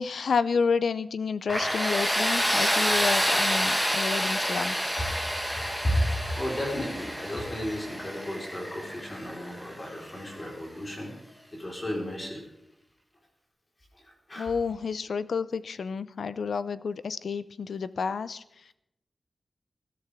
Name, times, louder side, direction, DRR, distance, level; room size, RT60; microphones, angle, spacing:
voice 1, 0.0-4.8 14.4-18.7, left 5 dB, 85° left, 15 dB, 0.6 m, -30 dB
Tools, 1.5-10.3, equal, 5° left, 1.7 m, -28 dB
voice 2, 6.3-11.1 11.5-12.4 14.3-14.5, equal, 30° left, -1 dB, 4.4 m, -32 dB
20.5 x 13.0 x 3.6 m, 0.83 s
wide cardioid pair, 120°, 0 cm